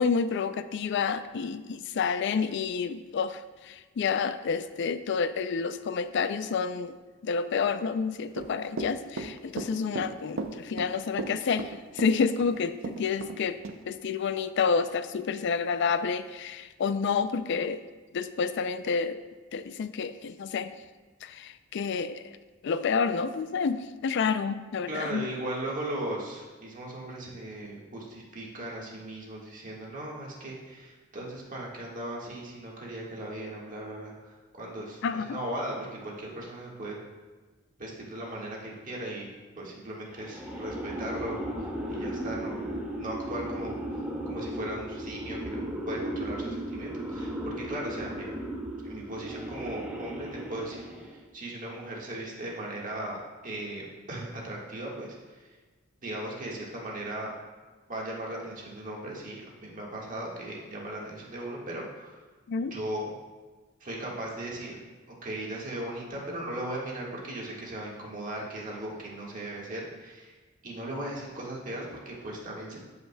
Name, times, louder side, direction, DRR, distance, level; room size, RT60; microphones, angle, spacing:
voice 1, 0.0-3.4 3.7-7.0 7.2-11.7 12.0-13.6 13.9-17.8 18.1-19.2 19.5-20.7 21.2-22.2 22.6-23.8 24.0-25.2 35.0-35.4 62.5-62.7, left 5 dB, 60° left, 12 dB, 0.4 m, -29 dB
Run / Walk footsteps, 8.3-13.4 13.6-13.8, right 3 dB, 85° right, 0.6 m, -35 dB
voice 2, 24.8-36.9 37.8-48.4 48.8-55.6 56.0-57.3 57.9-62.2 62.6-63.1 63.8-64.8 65.1-70.4 70.6-72.8, right 1 dB, 45° right, -3 dB, 1.6 m, -38 dB
sound 1, 40.1-51.3, right 1 dB, 10° right, 0.7 m, -36 dB
12.5 x 5.7 x 2.2 m, 1.3 s
head